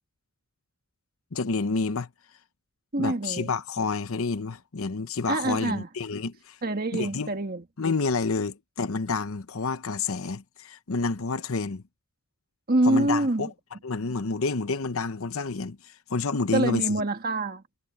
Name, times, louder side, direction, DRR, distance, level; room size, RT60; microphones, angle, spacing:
voice 1, 1.3-2.1 3.0-6.6 6.9-7.3 7.8-11.8 12.8-13.5 13.8-17.0, left 4 dB, 70° left, 0.8 m, -29 dB
voice 2, 2.9-3.5 5.3-5.9 6.6-7.6 12.7-13.5 16.5-17.6, right 2 dB, 45° right, 1.5 m, -25 dB
head